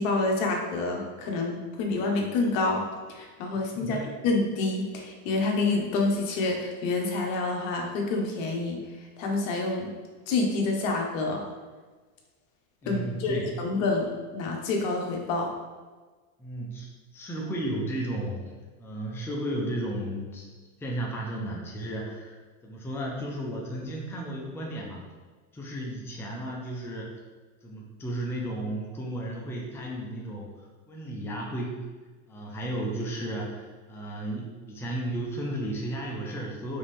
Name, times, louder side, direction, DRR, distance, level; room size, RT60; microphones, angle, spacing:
voice 1, 0.0-4.0 4.2-8.8 9.2-9.9 10.3-11.4 12.9-15.5, left 3 dB, 60° left, 1 dB, 1.1 m, -28 dB
voice 2, 3.7-4.1 12.8-13.6 16.4-16.9 17.1-18.5 18.8-20.5 20.8-22.4 22.6-25.0 25.5-27.2 27.6-31.8 32.3-36.8, right 1 dB, 5° left, -2 dB, 0.6 m, -34 dB
5.3 x 2.8 x 3.4 m, 1.4 s
supercardioid pair, 120°, 43 cm